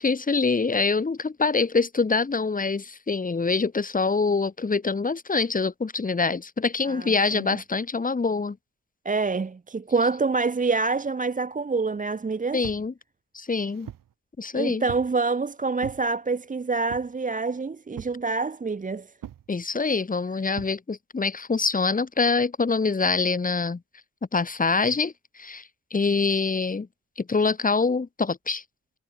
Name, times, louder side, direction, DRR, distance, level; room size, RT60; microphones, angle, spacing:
voice 1, 0.0-8.6 12.5-12.9 13.3-13.9 14.4-14.8 19.5-23.8 24.3-25.6 25.9-26.9 27.2-28.6, left 4 dB, 25° left, 2.2 m, -25 dB
voice 2, 6.9-7.6 9.0-12.6 14.5-19.1, right 4 dB, 25° right, 1.0 m, -26 dB
sound 1, 12.6-12.9 13.5-14.1 14.9-15.2 15.8-16.1 16.9-17.2 18.0-18.2 19.2-19.5 20.6-20.8, right 11 dB, 80° right, 3.8 m, -41 dB
cardioid pair, 110°, 32 cm